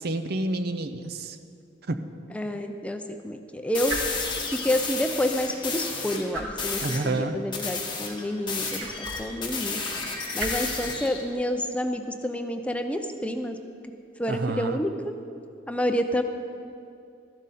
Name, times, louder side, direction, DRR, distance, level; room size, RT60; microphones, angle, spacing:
voice 1, 0.0-1.4 1.9-2.0 6.8-7.4 14.3-14.8, right 2 dB, 55° right, 9 dB, 0.6 m, -29 dB
sound 1, 0.9-14.4, right 2 dB, 80° right, 1.7 m, -42 dB
voice 2, 2.3-4.0 4.5-9.8 10.3-13.6 14.2-15.1 15.7-16.2, equal, 5° left, 6 dB, 0.5 m, -29 dB
sound 2, 3.7-6.2 6.6-7.0 7.5-11.2, left 4 dB, 25° left, 1.4 m, -32 dB
14.0 x 11.0 x 4.2 m, 2.5 s
head